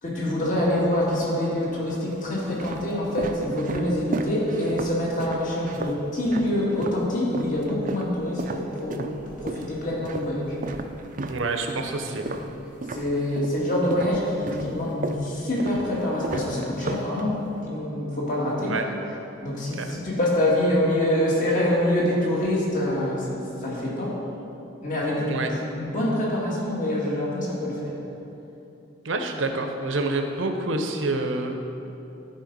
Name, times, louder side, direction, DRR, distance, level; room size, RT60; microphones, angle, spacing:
voice 1, 0.0-10.5 12.3-12.5 12.9-18.7 19.4-24.2 24.8-27.9, left 1 dB, 45° left, -5 dB, 1.8 m, -25 dB
sound 1, 0.5-1.3 1.9-7.1 7.3-13.6 13.9-17.6, right 2 dB, 45° right, 0.4 m, -34 dB
voice 2, 11.3-12.3 18.7-18.8 19.8-19.9 25.3-25.5 29.0-31.7, right 2 dB, 90° right, 5 dB, 0.8 m, -27 dB
12.0 x 4.6 x 5.3 m, 2.9 s
head